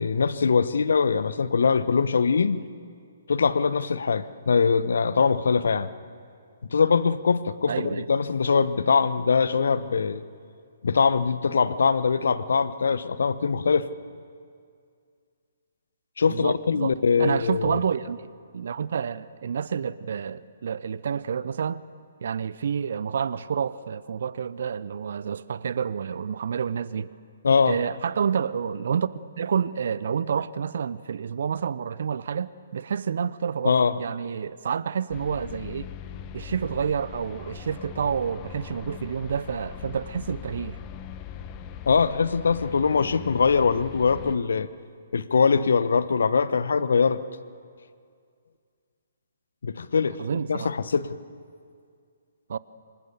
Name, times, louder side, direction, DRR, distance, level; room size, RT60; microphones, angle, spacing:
voice 1, 0.0-2.6 3.3-5.9 6.7-10.2 10.8-13.9 16.2-17.8 27.4-27.8 33.6-33.9 41.9-44.7 45.1-47.2 49.6-50.2 50.5-51.2, left 5 dB, 65° left, 1.1 m, -22 dB
voice 2, 7.7-8.0 16.3-18.2 18.5-21.8 22.2-27.1 27.7-35.9 36.3-40.8 50.2-50.7 52.5-52.6, right 7 dB, 55° right, 0.7 m, -29 dB
sound 1, 35.1-44.4, left 8 dB, 30° left, 1.3 m, -40 dB
27.5 x 25.5 x 6.9 m
figure-of-eight pair, 130°, 0 cm